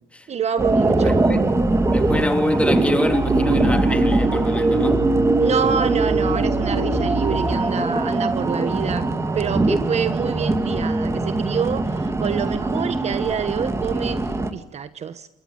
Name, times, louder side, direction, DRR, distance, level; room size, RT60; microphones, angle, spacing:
voice 1, 0.3-1.2 5.4-15.3, right 7 dB, 35° right, 1.2 m, -27 dB
sound 1, 0.6-14.5, right 2 dB, 15° right, 2.2 m, -21 dB
voice 2, 1.0-1.4 1.9-5.1, left 1 dB, 5° left, 3.2 m, -24 dB
28.0 x 23.5 x 8.8 m
cardioid pair, 150°, 18 cm